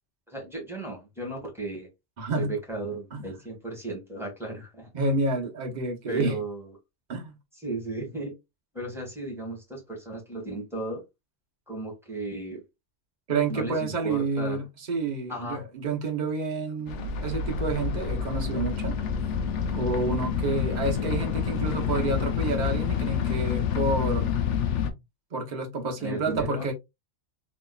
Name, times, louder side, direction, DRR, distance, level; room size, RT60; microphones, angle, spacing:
voice 1, 0.3-1.9 2.3-4.9 6.1-6.7 7.5-8.3 8.7-11.0 11.7-12.6 13.5-14.6 15.3-15.6 20.9-21.1 26.0-26.7, right 2 dB, ahead, 1.7 m, -35 dB
voice 2, 2.2-2.5 3.1-3.2 4.9-6.4 7.1-7.4 13.3-18.9 19.7-24.3 25.3-26.7, right 3 dB, 40° right, 0.9 m, -29 dB
sound 1, 16.9-24.9, left 7 dB, 75° left, 0.9 m, -28 dB
3.5 x 3.0 x 2.3 m
omnidirectional pair, 1.2 m